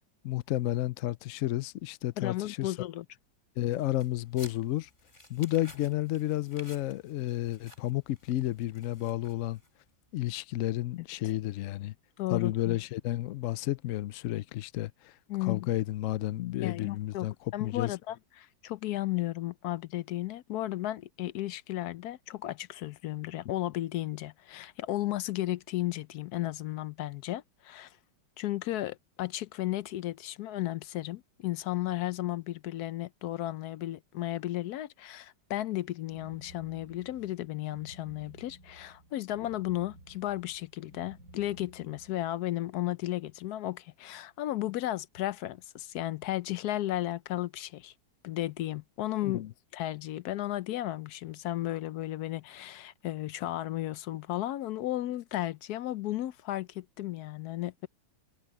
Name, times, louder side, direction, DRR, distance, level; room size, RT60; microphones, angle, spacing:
voice 1, 0.2-2.7 3.6-4.9 5.3-9.6 10.1-11.9 12.3-17.3 17.6-18.0 49.2-49.5, left 15 dB, 85° left, 0.7 m, -31 dB
voice 2, 2.2-3.0 12.2-12.8 15.3-15.7 16.6-27.9 28.4-47.9 48.2-49.4 49.7-57.9, left 15 dB, 70° left, 1.0 m, -34 dB
sound 1, 3.7-9.9, left 1 dB, 25° left, 3.9 m, -54 dB
sound 2, 36.1-42.4, right 1 dB, 50° right, 2.9 m, -54 dB
omnidirectional pair, 2.0 m